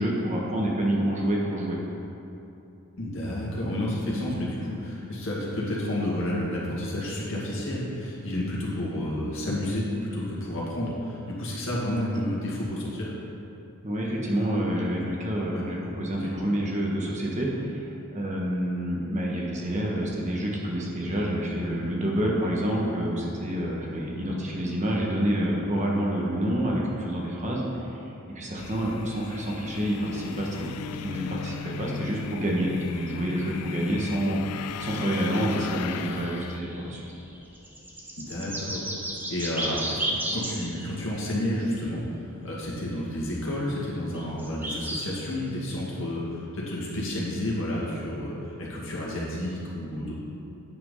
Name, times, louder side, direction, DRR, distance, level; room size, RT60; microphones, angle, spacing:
voice 1, 0.0-1.8 13.8-37.0, right 1 dB, 30° right, -3 dB, 1.2 m, -28 dB
voice 2, 3.0-13.1 15.5-15.6 16.2-16.3 38.2-38.9 39.3-42.0 42.4-50.1, left 1 dB, 60° left, -5 dB, 2.1 m, -30 dB
sound 1, 28.6-36.6, left 8 dB, 90° left, 0.3 m, -37 dB
sound 2, 30.9-31.3 32.2-32.3 34.5-34.6 34.8-34.9 35.2-41.2 42.8-42.9 44.1-45.1 45.7-45.8, right 1 dB, 10° right, 0.9 m, -34 dB
9.3 x 6.0 x 5.5 m, 2.8 s
head